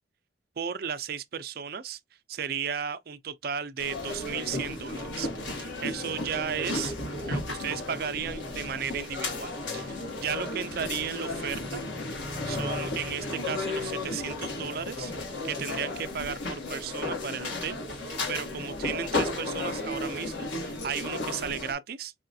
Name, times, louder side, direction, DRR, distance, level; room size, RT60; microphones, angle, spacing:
voice 1, 0.6-2.0 2.3-5.3 5.5-6.9 7.3-11.8 12.4-15.1 15.4-17.8 18.0-22.1, right 7 dB, 55° right, 0.4 m, -34 dB
sound 1, 3.8-21.7, left 2 dB, 85° left, 1.4 m, -34 dB
4.8 x 2.3 x 2.6 m
head